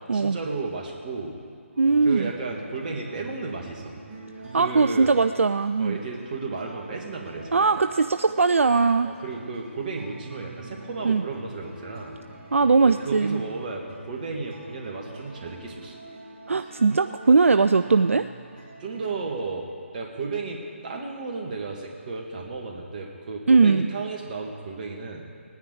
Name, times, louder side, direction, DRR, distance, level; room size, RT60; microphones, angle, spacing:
voice 1, 0.1-1.4 2.0-3.9 4.6-5.1 5.8-7.8 9.0-12.2 12.8-16.0 18.8-25.3, right 4 dB, 35° right, 0 dB, 2.0 m, -33 dB
sound 1, 1.7-19.3, right 2 dB, 20° right, 3.2 m, -44 dB
voice 2, 1.8-2.3 4.5-6.0 7.5-9.1 11.0-11.2 12.5-13.4 16.5-18.3 23.5-23.9, right 4 dB, 70° right, 10 dB, 0.4 m, -20 dB
19.0 x 9.8 x 4.9 m, 2.2 s
figure-of-eight pair, 140°, 7 cm